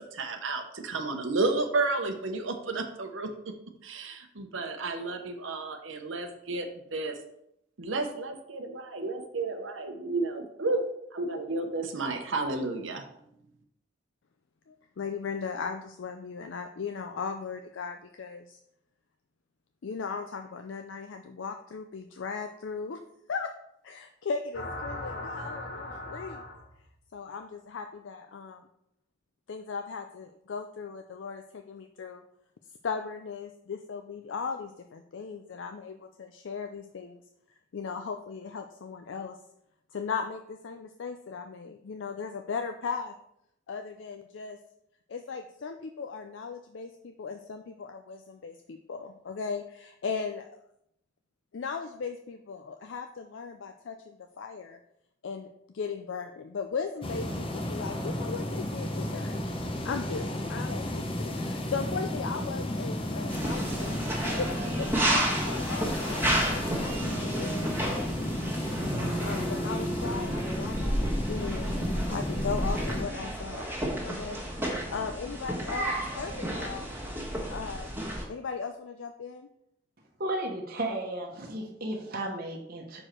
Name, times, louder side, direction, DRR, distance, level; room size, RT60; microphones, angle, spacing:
voice 1, 0.0-3.3 3.8-7.2 7.8-10.8 11.1-13.0, right 3 dB, 80° right, 5 dB, 0.8 m, -32 dB
voice 2, 14.7-18.6 19.8-23.0 23.3-23.5 23.8-26.4 27.1-28.6 29.5-32.2 32.8-37.2 37.7-39.4 39.9-43.1 43.7-44.6 45.1-50.5 51.5-54.8 55.2-59.5 59.8-64.0 64.4-68.6 69.2-73.7 74.0-76.9 77.5-78.0 78.3-79.5, left 5 dB, 75° left, 6 dB, 0.4 m, -37 dB
sound 1, 24.5-26.9, left 2 dB, 55° left, 1.1 m, -38 dB
sound 2, 57.0-73.0, left 1 dB, 30° left, 0.7 m, -33 dB
sound 3, 63.3-78.2, right 1 dB, 10° right, 1.5 m, -32 dB
voice 3, 80.2-83.0, right 1 dB, 50° right, 1 dB, 1.0 m, -34 dB
6.3 x 4.9 x 4.4 m, 0.76 s
head